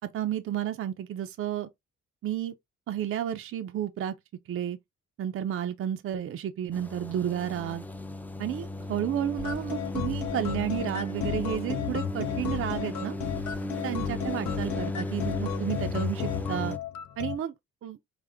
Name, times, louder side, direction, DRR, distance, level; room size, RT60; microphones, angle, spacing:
voice 1, 0.1-1.7 2.2-2.5 2.9-4.1 4.5-4.8 5.2-7.9 8.4-13.2 13.8-16.8 17.2-17.5 17.8-18.0, right 11 dB, 45° right, 0.5 m, -31 dB
sound 1, 6.7-16.8, left 1 dB, 5° left, 0.4 m, -35 dB
sound 2, 9.4-17.4, left 10 dB, 70° left, 0.6 m, -34 dB
4.9 x 2.0 x 3.4 m
cardioid pair, 90°, 30 cm